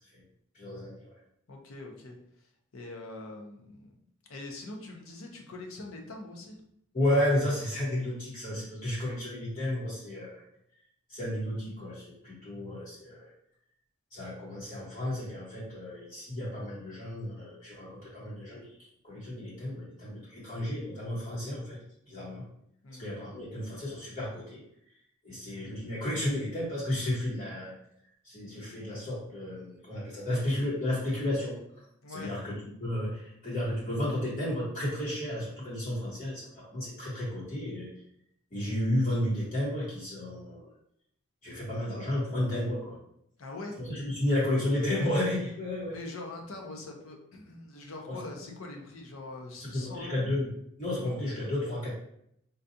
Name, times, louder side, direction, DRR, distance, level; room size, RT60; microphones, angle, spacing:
voice 1, 0.5-1.0 6.9-10.4 11.1-13.3 14.1-18.7 19.0-21.8 22.1-22.4 23.0-24.6 25.2-27.7 28.2-31.6 32.1-32.5 32.8-37.9 38.5-40.7 41.4-43.0 43.8-46.0 48.1-48.2 49.6-50.5 50.8-51.9, left 1 dB, 35° left, -8 dB, 1.1 m, -32 dB
voice 2, 1.5-2.5 2.7-4.0 4.3-6.6 22.8-23.1 32.0-32.3 43.4-43.8 45.9-50.3, left 2 dB, 75° left, 2 dB, 0.7 m, -43 dB
3.9 x 2.4 x 2.7 m, 0.72 s
head